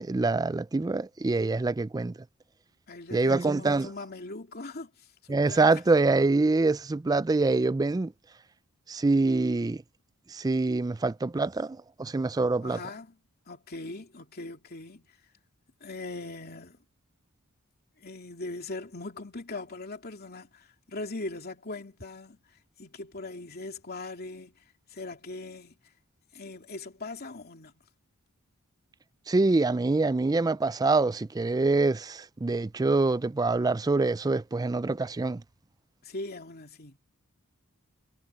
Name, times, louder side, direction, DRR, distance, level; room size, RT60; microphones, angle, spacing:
voice 1, 0.0-2.1 3.1-3.9 5.3-8.1 8.9-9.8 10.3-12.8 29.3-35.4, right 3 dB, 15° right, 0.3 m, -25 dB
voice 2, 2.9-5.8 12.6-13.2 13.5-15.1 15.8-16.8 18.0-25.8 26.3-27.7 36.0-37.0, left 2 dB, 45° left, 2.8 m, -40 dB
head